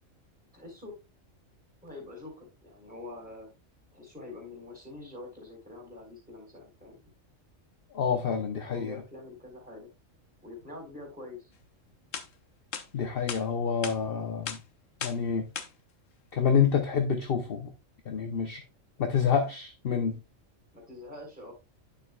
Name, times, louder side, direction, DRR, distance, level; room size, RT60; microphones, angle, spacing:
voice 1, 0.5-0.9 1.8-3.5 3.9-7.0 8.6-9.9 10.4-11.5 20.7-21.5, left 2 dB, 5° right, 3.9 m, -45 dB
voice 2, 7.9-9.0 12.9-14.6 15.0-15.4 16.3-17.7 18.1-18.6 19.0-20.2, left 7 dB, 50° left, 0.9 m, -27 dB
sound 1, 11.7-11.8 12.1-12.3 12.7-12.9 13.3-13.4 13.8-14.0 14.5-14.6 15.0-15.2 15.6-15.7, left 7 dB, 75° left, 1.3 m, -35 dB
9.7 x 6.8 x 2.3 m
omnidirectional pair, 1.3 m